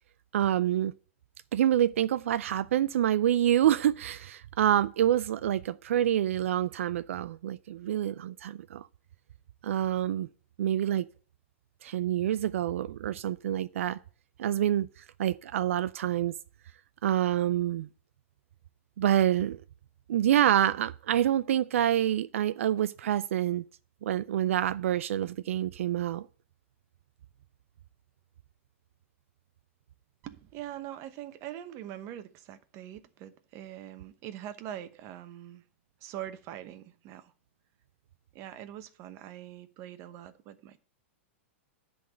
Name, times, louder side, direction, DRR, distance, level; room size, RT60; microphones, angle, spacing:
voice 1, 0.3-0.9 1.5-8.9 9.6-10.3 10.6-11.1 11.8-14.0 14.4-16.4 17.0-17.9 19.0-19.6 20.1-23.6 24.0-26.3, right 11 dB, 75° right, 0.4 m, -27 dB
voice 2, 30.2-35.6 36.0-37.3 38.3-40.8, right 12 dB, 40° right, 1.0 m, -43 dB
10.5 x 4.0 x 7.6 m
hypercardioid pair, 125°, 7 cm